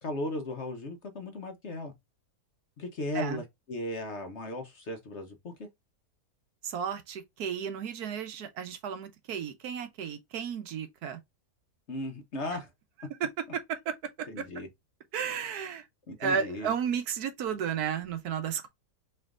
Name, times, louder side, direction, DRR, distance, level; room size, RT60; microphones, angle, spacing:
voice 1, 0.0-1.9 2.8-5.7 11.9-12.7 14.3-14.7 16.1-16.7, left 1 dB, 50° left, 1.0 m, -36 dB
voice 2, 6.6-11.2 13.2-14.4 15.1-15.8 16.2-18.7, right 7 dB, 70° right, 1.2 m, -33 dB
4.4 x 3.3 x 2.4 m
omnidirectional pair, 1.7 m